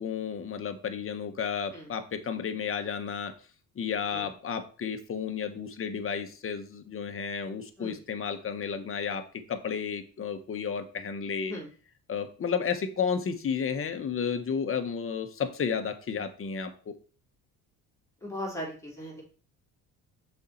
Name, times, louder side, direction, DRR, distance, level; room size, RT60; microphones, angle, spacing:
voice 1, 0.0-3.3 3.7-11.6 12.1-16.9, left 6 dB, 35° left, 8 dB, 1.1 m, -32 dB
voice 2, 18.2-19.2, equal, 10° left, -4 dB, 3.5 m, -38 dB
6.6 x 4.4 x 4.3 m, 0.38 s
cardioid pair, 100°, 36 cm